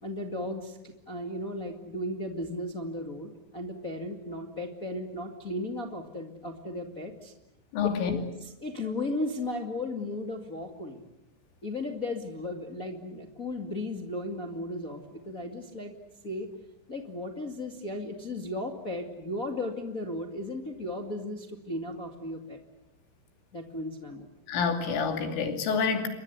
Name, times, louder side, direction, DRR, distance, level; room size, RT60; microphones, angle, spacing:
voice 1, 0.0-7.3 7.8-11.0 11.6-15.9 16.2-16.5 16.9-22.6 23.5-24.3, left 1 dB, 45° left, 4 dB, 1.1 m, -35 dB
voice 2, 7.7-8.2 24.5-26.1, left 6 dB, 80° left, 5 dB, 5.3 m, -27 dB
29.5 x 24.5 x 8.3 m, 0.86 s
omnidirectional pair, 5.6 m